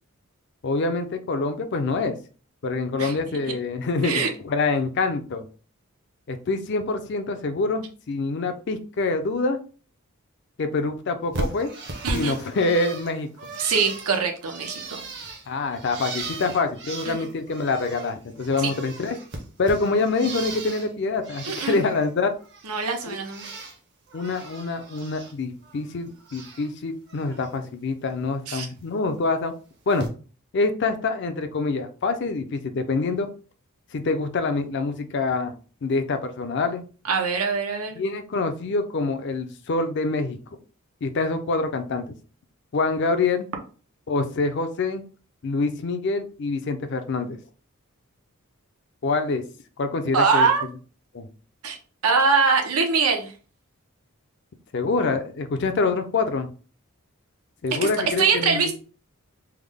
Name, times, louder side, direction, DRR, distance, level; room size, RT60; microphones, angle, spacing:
voice 1, 0.6-2.2 2.6-5.5 6.3-9.6 10.6-11.7 12.1-13.3 15.5-19.2 19.6-22.3 23.1-23.2 24.1-29.5 29.9-30.1 30.5-33.3 33.9-35.5 35.8-36.8 38.0-40.4 41.0-42.1 42.7-43.5 44.1-45.0 45.4-47.4 49.0-49.4 49.8-50.7 51.1-51.3 54.7-56.5 57.6-58.7, left 3 dB, 50° left, 8 dB, 0.4 m, -26 dB
Bird, 11.3-18.1 18.4-20.9 21.2-22.1 22.4-23.8 24.1-25.3 25.6-26.7 27.1-27.5 28.8-28.9 29.9-30.1, right 2 dB, 50° right, 0.7 m, -37 dB
voice 2, 12.0-12.4 13.6-15.0 17.1-17.3 18.6-18.7 21.5-21.8 22.6-23.4 28.5-28.7 37.1-38.0 50.1-50.7 51.6-51.8 52.0-53.3 58.2-58.7, right 5 dB, 90° right, 4 dB, 0.7 m, -23 dB
3.4 x 2.0 x 3.4 m, 0.37 s
head